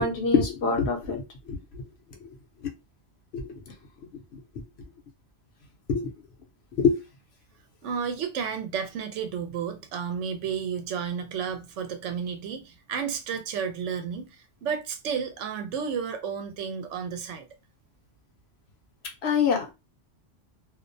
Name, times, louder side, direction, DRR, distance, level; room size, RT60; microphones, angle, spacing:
voice 1, 0.0-1.8 2.2-2.3 2.6-2.7 3.3-3.6 5.9-6.1 6.7-7.0 19.2-19.7, left 5 dB, 65° left, 0.8 m, -25 dB
voice 2, 7.8-17.5, right 7 dB, 80° right, 0.9 m, -32 dB
2.4 x 2.1 x 2.5 m
omnidirectional pair, 1.2 m